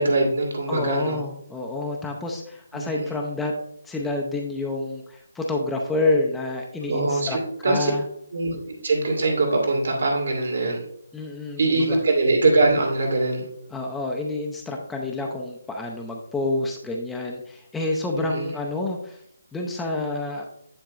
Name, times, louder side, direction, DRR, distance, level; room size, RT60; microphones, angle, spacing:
voice 1, 0.0-1.2 2.7-3.1 6.9-7.9 8.3-10.8 11.6-13.4 18.1-18.5, right 2 dB, 65° right, 0 dB, 2.2 m, -22 dB
voice 2, 0.7-3.5 3.8-7.4 7.6-8.0 11.1-12.0 13.7-19.2 19.5-20.5, left 2 dB, 5° left, -1 dB, 0.6 m, -28 dB
10.0 x 4.4 x 2.5 m, 0.70 s
figure-of-eight pair, 145°, 0 cm